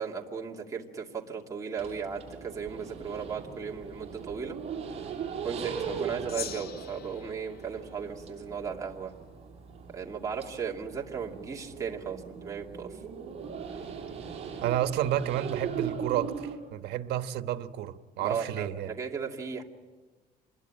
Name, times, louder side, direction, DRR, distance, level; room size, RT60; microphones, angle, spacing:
voice 1, 0.0-4.6 5.4-9.1 9.9-13.0 18.2-19.6, right 6 dB, 20° right, 0 dB, 2.5 m, -36 dB
sound 1, 1.8-16.6, right 6 dB, 40° right, 5.5 m, -40 dB
Gong, 6.3-8.9, left 8 dB, 70° left, 1.7 m, -44 dB
voice 2, 14.6-18.9, right 12 dB, 85° right, 9 dB, 1.3 m, -31 dB
27.0 x 21.5 x 9.0 m, 1.2 s
cardioid pair, 165°, 17 cm